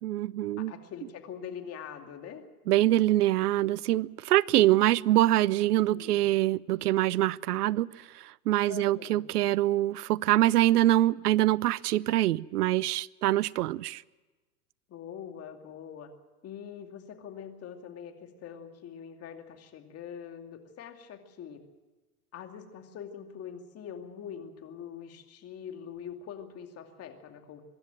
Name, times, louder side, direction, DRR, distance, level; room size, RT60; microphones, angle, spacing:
voice 1, 0.0-0.7 2.7-14.0, right 15 dB, 80° right, 24 dB, 0.6 m, -25 dB
voice 2, 0.7-2.4 5.9-6.2 8.7-9.2 14.9-16.1 16.4-21.6 22.3-27.6, left 8 dB, 30° left, 5 dB, 2.6 m, -43 dB
24.0 x 12.5 x 9.1 m, 1.2 s
hypercardioid pair, 110°, 46 cm